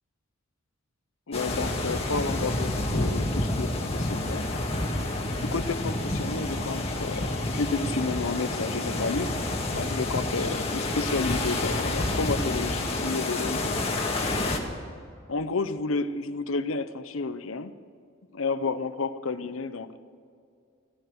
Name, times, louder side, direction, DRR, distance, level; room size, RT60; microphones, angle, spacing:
voice 1, 1.3-4.5 5.4-9.3 9.7-13.7 15.3-17.7 18.3-20.0, left 3 dB, 80° left, 12 dB, 0.7 m, -31 dB
sound 1, 1.3-14.6, left 2 dB, 30° left, 1.9 m, -29 dB
15.0 x 14.5 x 6.5 m, 2.3 s
head